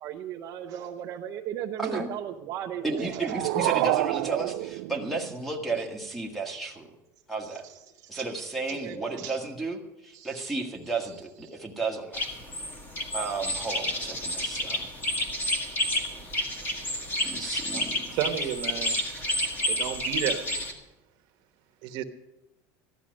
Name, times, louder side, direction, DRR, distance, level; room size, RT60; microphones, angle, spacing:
voice 1, 0.0-3.3 5.8-5.9 7.5-8.3 8.7-9.4 10.1-10.5 11.4-11.6 19.8-19.9, right 10 dB, 40° right, 1 dB, 0.7 m, -37 dB
voice 2, 1.8-2.1 2.8-6.9 7.3-7.7 8.1-12.2 13.1-14.9 17.2-18.5, right 3 dB, ahead, 4 dB, 1.5 m, -33 dB
sound 1, 2.8-5.8, right 19 dB, 80° right, 0.4 m, -29 dB
sound 2, 12.1-20.7, left 1 dB, 20° left, 1.9 m, -30 dB
voice 3, 18.1-19.0 19.7-20.4 21.8-22.0, right 11 dB, 55° right, 7 dB, 1.1 m, -31 dB
14.5 x 11.5 x 6.4 m, 0.97 s
cardioid pair, 170°, 9 cm